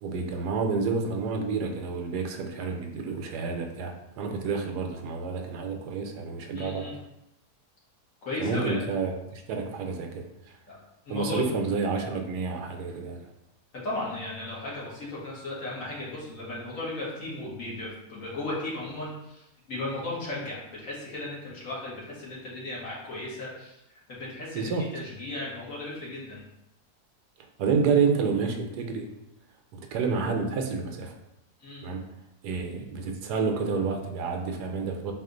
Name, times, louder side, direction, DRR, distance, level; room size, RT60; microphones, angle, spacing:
voice 1, 0.0-6.9 8.4-10.6 11.1-13.3 24.5-24.9 27.6-29.1 29.7-31.1 31.8-32.0 32.4-35.1, right 5 dB, 80° right, 3 dB, 1.1 m, -29 dB
voice 2, 6.5-6.9 8.2-8.8 10.7-10.8 11.0-11.4 13.7-23.8 24.1-26.4 31.6-31.9, left 2 dB, 55° left, -6 dB, 1.6 m, -35 dB
4.3 x 2.5 x 3.7 m, 0.87 s
omnidirectional pair, 1.7 m